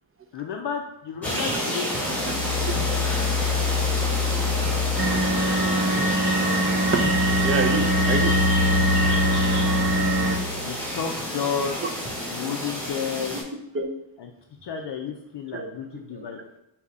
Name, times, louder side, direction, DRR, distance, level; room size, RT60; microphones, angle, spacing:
voice 1, 0.3-2.2 10.5-11.8 12.3-13.4 14.2-14.3 14.6-16.4, left 7 dB, 60° left, 2 dB, 0.6 m, -32 dB
sound 1, 1.2-13.4, equal, 5° left, 1.2 m, -29 dB
sound 2, 2.1-6.0 6.4-10.9, left 5 dB, 30° left, 0.8 m, -27 dB
sound 3, 5.0-10.4, right 1 dB, 50° right, 1.4 m, -23 dB
voice 2, 7.4-8.4 9.5-9.6 10.8-10.9 13.7-13.9 15.5-15.7 16.1-16.6, right 4 dB, 25° right, 4 dB, 0.5 m, -27 dB
5.5 x 2.4 x 3.5 m, 0.85 s
cardioid pair, 100°, 49 cm